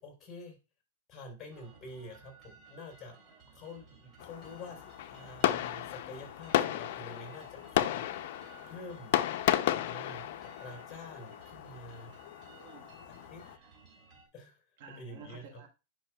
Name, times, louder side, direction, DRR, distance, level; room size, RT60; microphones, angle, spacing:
voice 1, 0.0-0.6 1.1-3.2 3.5-8.4 8.7-9.1 9.7-10.3 10.6-12.1 13.1-13.4 14.3-14.6 15.0-15.6, left 2 dB, 25° left, 2 dB, 3.6 m, -48 dB
sound 1, 1.5-14.3, right 4 dB, 25° right, 2.9 m, -58 dB
Fireworks, 4.2-13.6, left 12 dB, 60° left, 0.6 m, -34 dB
voice 2, 12.5-12.9 13.2-13.7 14.8-15.7, right 4 dB, 55° right, 4 dB, 1.4 m, -53 dB
10.5 x 5.5 x 2.3 m, 0.29 s
hypercardioid pair, 135°, 0 cm